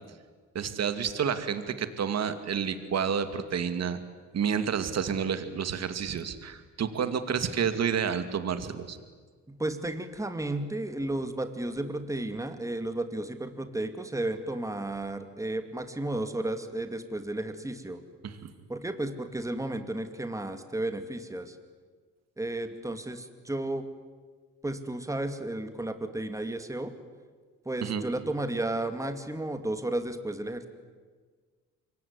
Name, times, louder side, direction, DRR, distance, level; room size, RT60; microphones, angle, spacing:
voice 1, 0.5-4.0 4.3-9.0 18.2-18.5 27.8-28.0, right 7 dB, 60° right, 10 dB, 2.5 m, -30 dB
voice 2, 9.5-18.0 18.7-21.5 22.4-23.8 24.6-26.9 27.7-30.7, right 1 dB, 10° right, 8 dB, 2.5 m, -33 dB
26.0 x 23.0 x 9.8 m, 1.5 s
cardioid pair, 90°, 30 cm